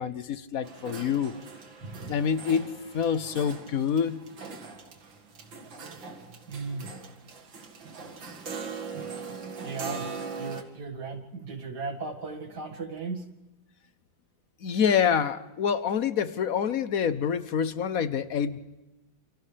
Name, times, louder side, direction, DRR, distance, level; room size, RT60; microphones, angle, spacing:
voice 1, 0.0-1.3 2.1-4.2 14.6-18.6, left 7 dB, 55° left, 13 dB, 1.1 m, -27 dB
sound 1, 0.6-10.6, right 5 dB, 75° right, 2.7 m, -41 dB
voice 2, 1.8-2.2 5.7-5.8 6.3-6.9 9.6-13.2, right 4 dB, 55° right, 5 dB, 2.6 m, -37 dB
29.5 x 28.0 x 3.4 m, 1.1 s
omnidirectional pair, 2.1 m